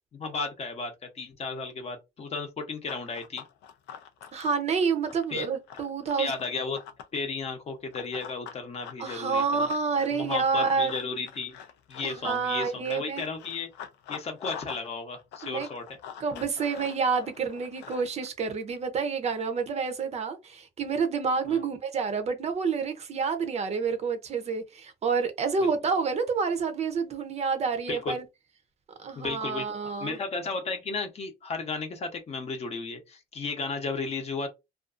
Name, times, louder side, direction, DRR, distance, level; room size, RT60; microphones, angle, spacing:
voice 1, 0.1-3.4 5.3-5.5 6.2-6.8 7.1-9.7 10.1-11.6 11.9-13.7 14.1-16.0 21.5-21.6 25.6-25.7 27.9-28.2 29.2-34.5, left 4 dB, 40° left, 0.7 m, -34 dB
Run, 2.9-7.2 7.9-14.9 15.2-18.3, left 8 dB, 85° left, 0.5 m, -44 dB
voice 2, 4.3-6.4 9.0-10.9 12.0-13.2 15.4-15.7 16.2-28.2 29.0-30.2, right 5 dB, 40° right, 0.5 m, -28 dB
2.5 x 2.3 x 2.4 m
cardioid pair, 110°, 17 cm